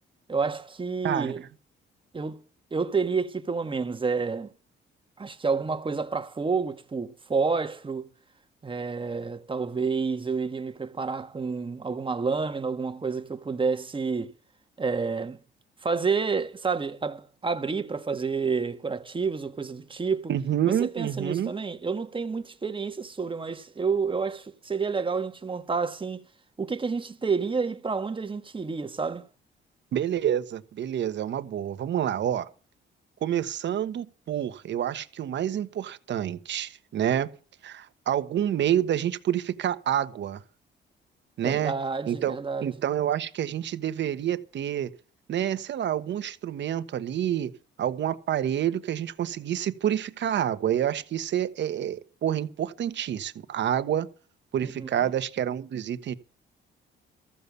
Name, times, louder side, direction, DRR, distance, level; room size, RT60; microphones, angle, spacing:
voice 1, 0.3-1.4 2.1-2.4 2.7-4.5 5.2-8.1 8.6-14.3 14.8-15.4 15.8-20.3 20.6-26.2 26.6-29.3 41.4-42.7 54.6-54.9, right 5 dB, 25° right, 1.4 m, -29 dB
voice 2, 20.3-21.5 29.9-32.5 33.2-37.3 37.6-40.4 41.4-41.7 42.1-42.4 42.6-44.9 45.3-47.5 47.8-54.1 54.5-56.1, right 10 dB, 65° right, 1.2 m, -28 dB
14.5 x 7.0 x 8.1 m
cardioid pair, 90°, 20 cm